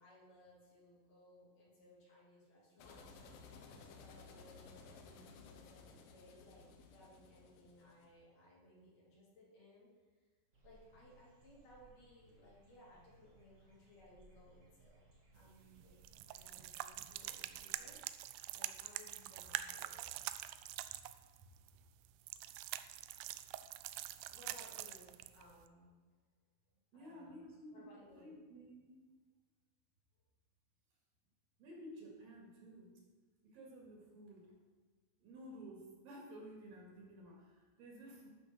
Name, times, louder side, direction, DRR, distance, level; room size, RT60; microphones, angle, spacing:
voice 1, 0.0-3.2 3.7-9.9 10.6-16.0 16.3-18.0 18.5-20.2 21.4-21.5 24.3-25.9 26.9-28.3, left 1 dB, 55° left, -7 dB, 4.7 m, -62 dB
sound 1, 2.8-8.1, left 4 dB, 70° left, 2.5 m, -57 dB
sound 2, 10.5-18.0, right 2 dB, 40° right, 1.1 m, -67 dB
sound 3, 15.4-25.7, right 14 dB, 85° right, 2.4 m, -45 dB
voice 2, 26.9-27.9 28.2-29.0 31.6-32.9 33.4-34.5 35.2-38.3, equal, 60° right, -2 dB, 3.5 m, -53 dB
12.0 x 6.0 x 6.3 m, 1.4 s
omnidirectional pair, 4.8 m